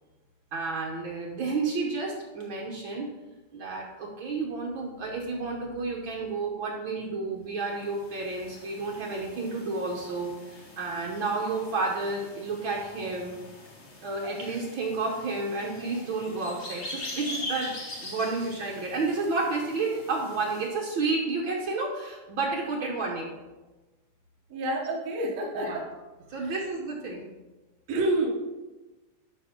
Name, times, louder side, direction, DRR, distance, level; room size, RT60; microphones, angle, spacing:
voice 1, 0.5-3.1 3.5-13.4 14.0-17.7 18.0-23.4 25.5-25.8 26.3-27.2, right 3 dB, 85° right, -1 dB, 1.1 m, -31 dB
sound 1, 7.7-20.7, left 2 dB, 90° left, 0.6 m, -43 dB
voice 2, 24.5-25.8 27.9-28.3, right 1 dB, 60° right, -1 dB, 2.3 m, -28 dB
12.0 x 5.2 x 3.7 m, 1.2 s
omnidirectional pair, 3.7 m